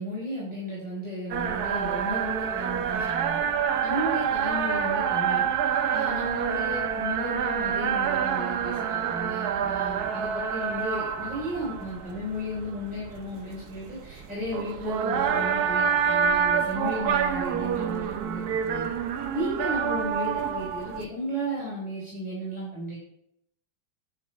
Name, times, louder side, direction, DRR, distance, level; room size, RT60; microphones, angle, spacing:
voice 1, 0.0-3.4 3.8-5.5 5.9-18.9 19.3-23.0, equal, 5° right, -7 dB, 4.1 m, -34 dB
sound 1, 1.3-21.0, right 7 dB, 65° right, 1.2 m, -27 dB
10.0 x 8.2 x 4.5 m, 0.78 s
omnidirectional pair, 2.0 m